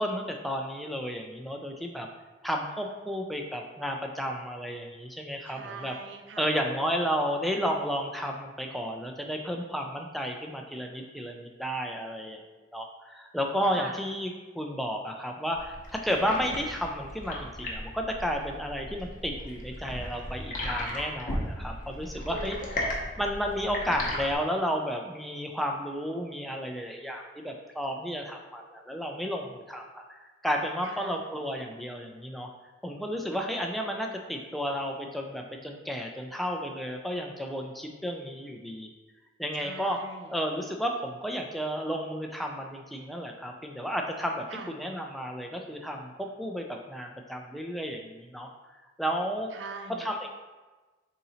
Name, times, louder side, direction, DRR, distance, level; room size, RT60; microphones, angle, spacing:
voice 1, 0.0-2.1 2.4-6.0 6.4-12.4 12.7-22.6 23.2-32.5 32.8-38.9 39.4-40.0 40.3-48.5 49.0-49.5 50.0-50.3, equal, ahead, 1 dB, 0.3 m, -32 dB
voice 2, 5.5-6.5 13.6-14.0 22.3-22.8 30.8-31.2 39.6-40.4 44.5-44.7 49.5-50.1, right 4 dB, 70° right, 5 dB, 0.4 m, -42 dB
sound 1, 15.6-24.4, left 1 dB, 45° left, 0.7 m, -36 dB
3.8 x 2.8 x 4.1 m, 1.2 s
head